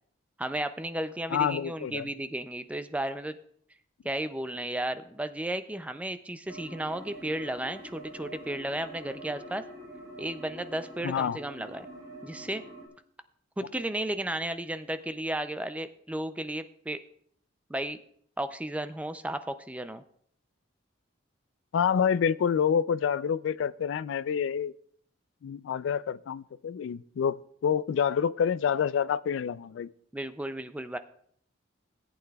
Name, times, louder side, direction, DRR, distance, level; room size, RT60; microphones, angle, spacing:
voice 1, 0.4-3.4 4.0-9.6 10.2-11.9 12.2-12.6 13.6-17.0 17.7-18.0 18.4-20.0 30.1-31.0, right 1 dB, 5° right, 11 dB, 0.3 m, -34 dB
voice 2, 1.3-2.1 11.0-11.4 21.7-24.7 25.4-29.9, left 7 dB, 70° left, 19 dB, 0.3 m, -27 dB
sound 1, 6.5-12.9, right 1 dB, 25° right, 2.7 m, -45 dB
18.0 x 8.6 x 2.3 m, 0.65 s
head